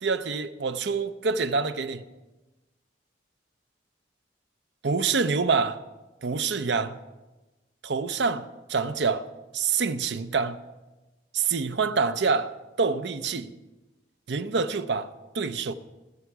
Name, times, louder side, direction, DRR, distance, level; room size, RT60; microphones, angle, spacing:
voice 1, 0.0-2.0 4.8-5.8 6.2-7.0 7.8-9.3 9.5-10.6 11.3-12.5 12.8-13.5 14.3-15.1 15.3-15.7, right 5 dB, 65° right, 0.6 m, -26 dB
20.0 x 6.9 x 4.7 m
head